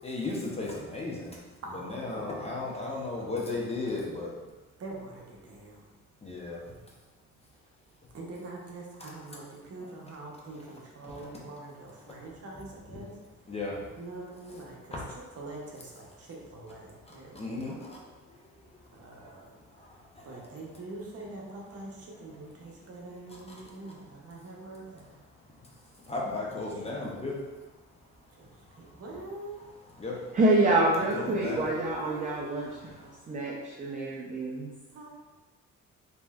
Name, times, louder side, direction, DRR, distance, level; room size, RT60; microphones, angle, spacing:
voice 1, 0.0-1.4 1.9-4.3 6.2-6.6 13.5-13.8 14.9-15.1 17.3-18.0 20.3-20.4 26.1-27.3 30.0-30.2 31.1-31.7, left 3 dB, 20° left, -4 dB, 0.6 m, -34 dB
voice 2, 1.6-3.3 4.8-5.9 8.1-13.2 14.0-15.0 15.3-18.0 18.9-19.6 19.8-25.2 26.2-27.0 28.3-28.5 28.7-29.6 31.3-32.4 33.2-34.1 34.9-35.2, right 2 dB, 50° right, -2 dB, 0.7 m, -44 dB
voice 3, 30.3-34.7, right 2 dB, 25° right, -4 dB, 0.4 m, -27 dB
3.0 x 2.7 x 2.3 m, 1.2 s
cardioid pair, 90°, 30 cm